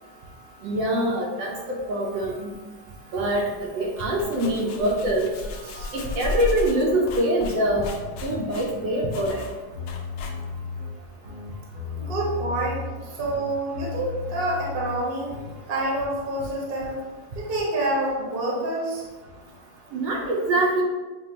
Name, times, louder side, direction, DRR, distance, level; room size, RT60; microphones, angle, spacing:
voice 1, 0.6-1.5 1.9-2.5 3.1-3.5 3.8-5.3 5.8-7.9 8.2-9.4 19.9-20.8, right 1 dB, 75° right, -1 dB, 1.3 m, -24 dB
sound 1, 3.8-10.7, left 3 dB, 85° left, 1.4 m, -35 dB
sound 2, 7.7-15.6, left 4 dB, 55° right, 0.5 m, -36 dB
voice 2, 11.9-12.8 13.2-15.3 15.7-17.0 17.3-19.0, right 1 dB, 40° right, -4 dB, 0.9 m, -27 dB
6.1 x 2.3 x 2.7 m, 1.3 s
omnidirectional pair, 2.2 m